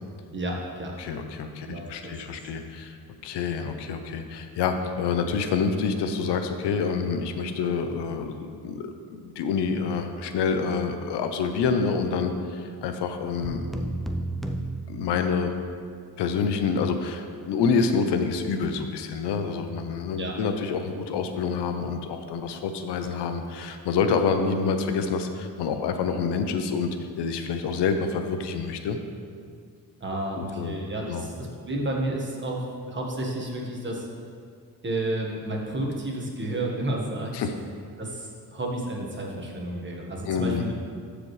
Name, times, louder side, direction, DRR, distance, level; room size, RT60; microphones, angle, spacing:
voice 1, 0.3-0.9 1.6-2.4 20.2-20.3 30.0-34.1 34.8-37.3 38.0-40.7, right 1 dB, 30° right, -1 dB, 1.5 m, -31 dB
voice 2, 1.0-3.0 3.2-13.9 14.9-15.5 16.2-29.0 30.3-30.8 31.1-31.3 37.3-37.5 40.3-40.7, left 5 dB, 85° left, 7 dB, 0.7 m, -27 dB
sound 1, 13.4-15.7, right 1 dB, ahead, 0.5 m, -32 dB
13.0 x 5.0 x 3.2 m, 2.2 s
cardioid pair, 105°, 40 cm